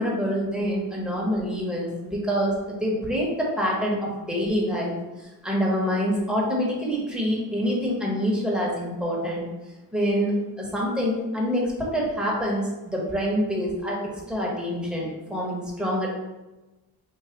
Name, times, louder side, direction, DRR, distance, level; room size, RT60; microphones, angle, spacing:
voice 1, 0.0-9.5 9.9-16.1, equal, ahead, -4 dB, 1.4 m, -26 dB
5.1 x 2.7 x 2.9 m, 1.1 s
cardioid pair, 80°, 36 cm